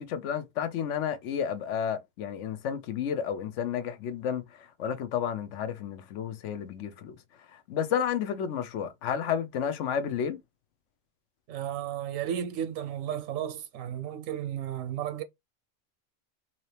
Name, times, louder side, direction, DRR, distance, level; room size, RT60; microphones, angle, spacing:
voice 1, 0.0-4.4 4.8-7.2 7.7-10.4, left 8 dB, 70° left, 0.9 m, -31 dB
voice 2, 11.5-15.2, right 10 dB, 85° right, 1.0 m, -33 dB
3.7 x 2.8 x 3.2 m
omnidirectional pair, 1.3 m